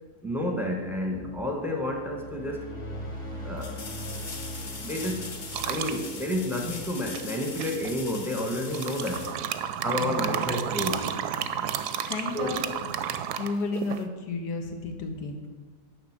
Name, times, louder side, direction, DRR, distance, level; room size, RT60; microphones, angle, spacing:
voice 1, 0.2-2.7 3.4-3.8 4.8-5.3 5.6-9.3 9.8-11.1 12.3-12.6, left 1 dB, ahead, 1 dB, 0.8 m, -30 dB
sound 1, 1.7-8.3, equal, 20° left, 1.1 m, -41 dB
sound 2, 3.6-10.2 13.0-13.1, left 4 dB, 40° left, 0.7 m, -41 dB
Gargling water, 5.5-6.0 7.1-7.9 8.7-14.0, right 9 dB, 85° right, 1.1 m, -32 dB
voice 2, 10.0-10.4 11.3-11.8 12.1-12.9 13.3-15.5, left 3 dB, 90° left, 4 dB, 1.6 m, -33 dB
11.0 x 3.7 x 7.2 m, 1.4 s
omnidirectional pair, 1.7 m